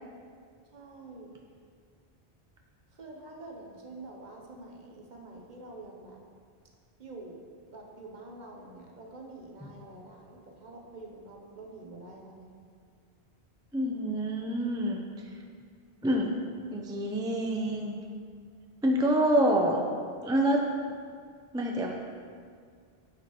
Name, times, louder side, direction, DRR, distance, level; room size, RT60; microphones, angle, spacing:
voice 1, 0.7-1.4 2.9-6.2 7.0-7.4 7.7-12.5, right 2 dB, 50° right, 0 dB, 0.9 m, -47 dB
voice 2, 13.7-15.0 16.0-16.3 16.7-18.0 18.8-19.8 20.2-20.6 21.5-21.9, right 1 dB, 5° right, 0 dB, 0.3 m, -26 dB
9.1 x 5.0 x 3.0 m, 2.1 s
omnidirectional pair, 1.1 m